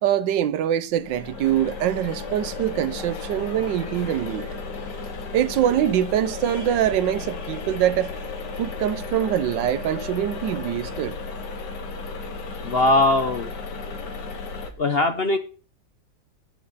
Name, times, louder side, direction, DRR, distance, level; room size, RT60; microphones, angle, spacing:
voice 1, 0.0-4.6 5.3-8.3 8.6-11.2, right 11 dB, 85° right, 1.4 m, -24 dB
sound 1, 0.9-14.7, left 4 dB, 70° left, 1.9 m, -34 dB
voice 2, 12.6-13.5 14.8-15.4, left 2 dB, 45° left, 0.8 m, -20 dB
9.1 x 8.5 x 4.0 m
omnidirectional pair, 1.9 m